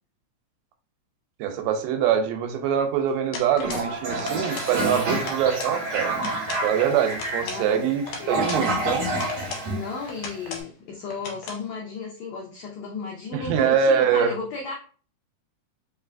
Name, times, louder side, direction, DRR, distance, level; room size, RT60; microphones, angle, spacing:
voice 1, 1.4-6.1 6.6-9.0 13.3-14.3, right 8 dB, 90° right, 5 dB, 2.4 m, -24 dB
sound 1, 3.3-4.8 5.0-5.8 6.1-6.7 7.1-8.7 9.1-9.7 10.1-10.7 11.1-11.6, left 4 dB, 70° left, 2.3 m, -37 dB
Toilet flush, 3.6-10.5, right 2 dB, 55° right, 2.5 m, -28 dB
voice 2, 7.4-7.9 8.2-8.6 9.7-14.7, left 4 dB, 90° left, 0 dB, 1.5 m, -34 dB
5.1 x 3.3 x 2.4 m, 0.40 s
omnidirectional pair, 3.9 m